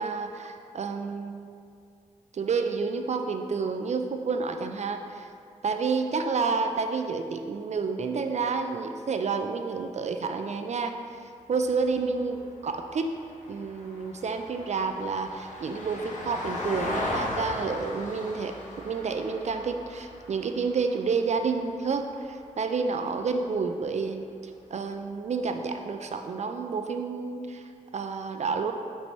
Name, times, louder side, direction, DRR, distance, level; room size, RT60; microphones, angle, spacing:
voice 1, 0.0-1.5 2.3-5.3 5.6-11.0 11.5-13.1 13.5-28.7, right 4 dB, 60° right, 6 dB, 0.4 m, -30 dB
Vehicle, 11.5-22.0 24.3-24.4, left 2 dB, 75° left, 1.0 m, -38 dB
4.6 x 4.3 x 5.3 m, 2.3 s
wide cardioid pair, 80°, 13 cm